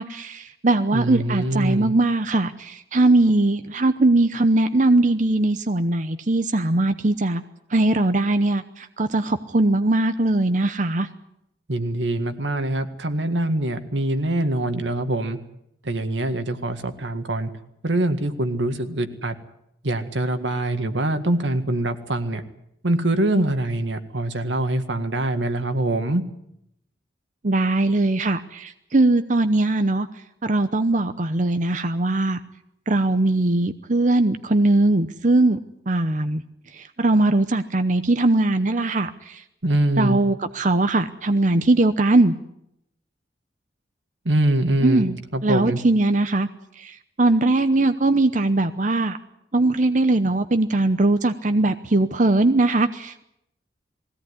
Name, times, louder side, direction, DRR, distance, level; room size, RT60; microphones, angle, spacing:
voice 1, 0.0-7.4 7.7-11.1 27.4-30.1 30.4-32.4 32.9-35.6 35.9-36.4 36.8-39.4 40.0-42.3 44.8-45.2 45.4-46.5 46.8-46.9 47.2-49.2 49.5-53.2, right 2 dB, 45° right, 9 dB, 0.8 m, -20 dB
voice 2, 0.9-1.9 11.7-15.4 15.8-17.5 17.8-19.4 19.8-22.4 22.8-26.2 39.6-40.2 44.3-45.1 45.3-45.8, right 1 dB, 90° right, 8 dB, 1.9 m, -24 dB
20.5 x 17.0 x 9.7 m, 0.78 s
head